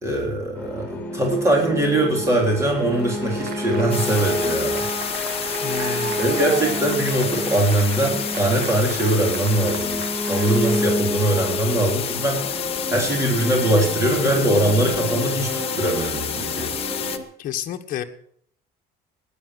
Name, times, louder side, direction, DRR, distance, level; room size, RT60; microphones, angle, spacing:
voice 1, 0.0-4.9 5.8-10.0 10.3-12.5 12.9-16.7, right 1 dB, 15° right, 0 dB, 3.7 m, -22 dB
sound 1, 0.5-17.2, left 1 dB, 10° left, 4.1 m, -29 dB
Applause, 2.9-10.9, right 8 dB, 60° right, 1.6 m, -36 dB
sound 2, 3.9-17.2, left 9 dB, 35° left, 1.1 m, -30 dB
voice 2, 5.6-6.2 17.4-18.0, left 10 dB, 50° left, 5 dB, 1.4 m, -30 dB
17.0 x 10.5 x 7.7 m, 0.66 s
cardioid pair, 175°, 18 cm